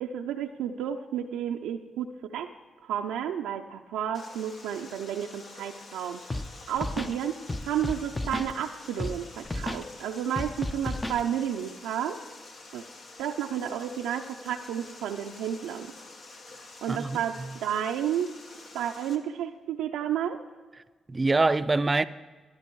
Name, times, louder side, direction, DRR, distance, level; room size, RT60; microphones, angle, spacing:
voice 1, 0.0-2.5 2.8-6.2 6.7-7.4 7.6-12.2 12.7-12.8 13.2-15.9 16.8-18.3 18.7-20.4, right 9 dB, 90° right, 0.4 m, -31 dB
Water, 4.1-19.2, left 3 dB, 60° left, 1.4 m, -48 dB
Scratching (performance technique), 6.3-6.5 6.7-7.1 7.5-8.5 9.0-9.2 9.4-9.8 10.4-11.2, left 1 dB, 20° left, 0.6 m, -32 dB
voice 2, 16.9-17.5 21.1-22.1, right 3 dB, 30° right, 0.5 m, -25 dB
14.0 x 11.5 x 4.6 m
supercardioid pair, 55°, 0 cm